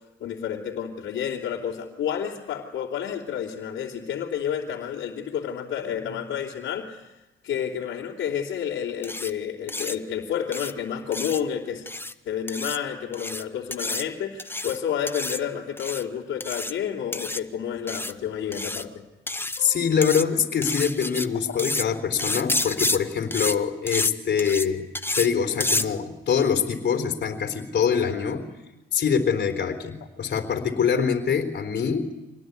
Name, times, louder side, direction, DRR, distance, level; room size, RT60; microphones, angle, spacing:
voice 1, 0.2-7.0 7.4-11.9 12.2-19.0 21.5-21.6, left 8 dB, 75° left, -5 dB, 3.3 m, -30 dB
sound 1, 9.0-9.3 9.7-10.0 10.5-10.7 11.1-11.4 11.9-12.1 12.5-12.8 13.1-13.4 13.7-14.0 14.4-14.8 15.1-15.4 15.8-16.0 16.4-16.7 17.1-17.4 17.9-18.1 18.5-18.8 19.3-19.6 20.0-20.2 20.6-21.3 21.6-21.9 22.2-23.0 23.3-23.6 23.9-24.1 24.4-24.7 25.0-25.3 25.6-25.9, left 2 dB, 10° left, 1.0 m, -29 dB
voice 2, 19.6-24.9 25.1-28.5 28.9-32.1, left 7 dB, 60° left, 6 dB, 3.9 m, -24 dB
26.0 x 19.5 x 9.6 m, 1.0 s
cardioid pair, 90°, 20 cm